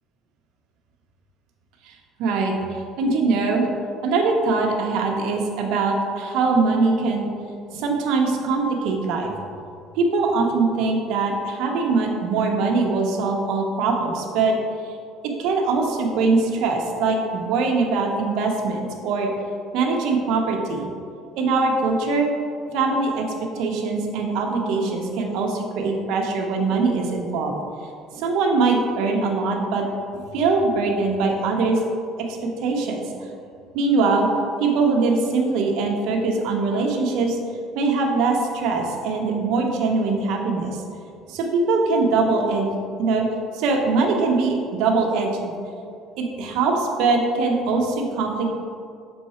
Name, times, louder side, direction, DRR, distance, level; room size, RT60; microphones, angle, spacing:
voice 1, 1.9-3.7 4.0-7.3 7.7-9.3 9.9-14.6 15.4-19.3 19.7-20.9 21.3-22.3 22.7-27.5 28.1-29.9 30.1-31.8 32.2-32.4 32.6-33.1 33.7-34.3 34.6-37.4 37.7-40.8 41.3-42.7 43.0-43.3 43.5-45.5 46.2-48.5, right 3 dB, 70° right, 1 dB, 1.0 m, -22 dB
6.4 x 4.5 x 4.3 m, 2.4 s
cardioid pair, 145°, 0 cm